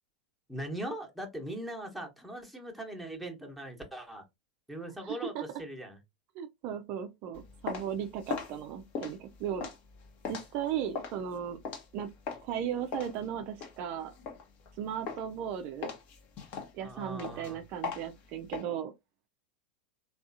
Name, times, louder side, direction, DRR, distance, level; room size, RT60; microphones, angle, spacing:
voice 1, 0.5-4.2 4.7-6.0 16.8-17.6, right 1 dB, ahead, 1.0 m, -40 dB
voice 2, 5.0-5.4 6.3-9.7 10.3-11.6 11.9-12.1 12.4-14.1 14.8-15.9 16.7-18.9, right 9 dB, 45° right, 0.4 m, -36 dB
sound 1, 7.3-12.5 12.9-14.7 15.1-15.4 15.8-18.6, left 5 dB, 45° left, 0.9 m, -39 dB
3.5 x 2.4 x 2.6 m
figure-of-eight pair, 85°, 4 cm